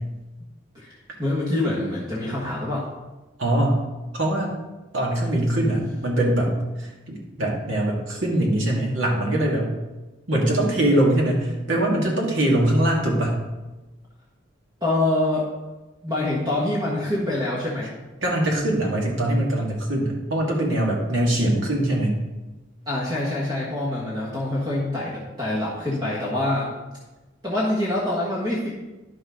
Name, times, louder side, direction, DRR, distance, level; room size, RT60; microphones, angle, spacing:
voice 1, 0.7-2.8 14.8-15.5 16.0-17.9 22.9-26.7 27.4-28.7, left 1 dB, 20° right, -6 dB, 1.5 m, -25 dB
voice 2, 3.4-3.8 4.1-4.5 4.9-6.5 6.8-9.7 10.3-13.4 18.2-22.2, right 1 dB, 75° right, -2 dB, 2.1 m, -22 dB
10.5 x 6.2 x 3.8 m, 1.1 s
head